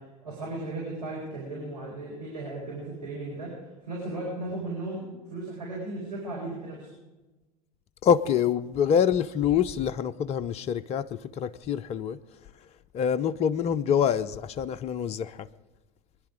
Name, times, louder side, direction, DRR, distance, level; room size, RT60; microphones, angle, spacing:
voice 1, 0.0-3.5 3.8-5.1 5.3-6.9, right 2 dB, 85° right, 4.4 m, -36 dB
voice 2, 8.0-12.2 12.9-15.5, left 8 dB, 30° left, 0.6 m, -26 dB
23.0 x 10.5 x 4.8 m
figure-of-eight pair, 75°, 20 cm